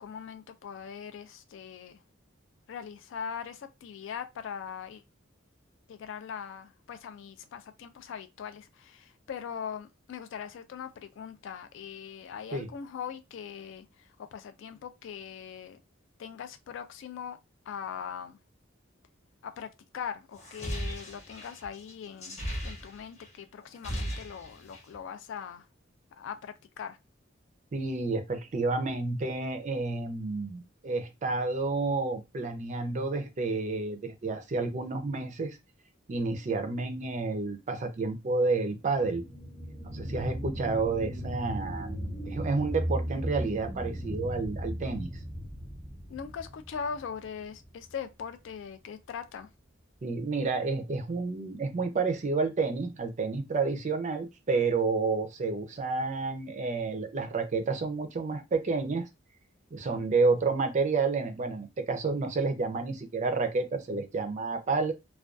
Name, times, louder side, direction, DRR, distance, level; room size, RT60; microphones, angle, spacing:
voice 1, 0.0-2.0 2.7-5.0 5.9-15.8 16.2-17.4 17.7-18.4 19.4-19.7 19.9-22.4 22.6-25.7 26.2-27.0 46.1-49.5, left 7 dB, 65° left, 0.3 m, -41 dB
sound 1, 20.4-23.3 23.6-25.0, equal, 35° left, 0.8 m, -37 dB
voice 2, 27.7-35.6 36.1-39.2 39.9-41.9 42.3-45.1 50.0-59.1 59.7-64.9, right 3 dB, 40° right, 0.4 m, -30 dB
sound 2, 38.8-47.9 48.3-48.4, equal, 5° left, 0.7 m, -37 dB
2.4 x 2.2 x 2.3 m
head